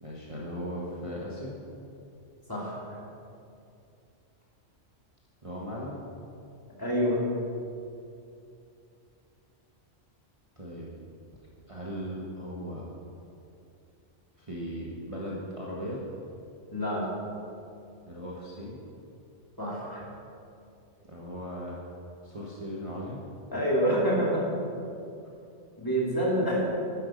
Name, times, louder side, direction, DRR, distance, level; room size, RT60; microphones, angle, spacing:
voice 1, 0.0-1.5 5.4-6.0 10.6-10.9 11.7-12.8 14.4-16.0 18.1-18.8 21.1-21.8 22.2-23.2, equal, 25° right, -5 dB, 1.5 m, -37 dB
voice 2, 2.5-3.0 6.8-7.2 16.7-17.1 19.6-20.0 23.5-24.5 25.8-26.6, equal, 15° left, -6 dB, 3.2 m, -27 dB
12.5 x 10.5 x 5.3 m, 2.6 s
omnidirectional pair, 1.3 m